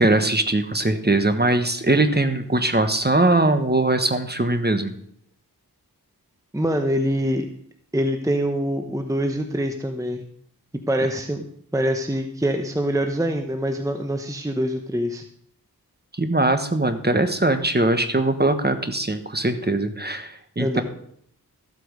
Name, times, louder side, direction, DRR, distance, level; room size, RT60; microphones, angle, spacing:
voice 1, 0.0-4.9 16.2-20.8, right 2 dB, 25° right, 8 dB, 1.3 m, -21 dB
voice 2, 6.5-7.5 7.9-10.2 10.9-11.5 11.7-15.2 20.6-20.8, equal, 10° right, 5 dB, 0.9 m, -24 dB
14.0 x 8.1 x 5.2 m, 0.67 s
wide cardioid pair, 60°, 39 cm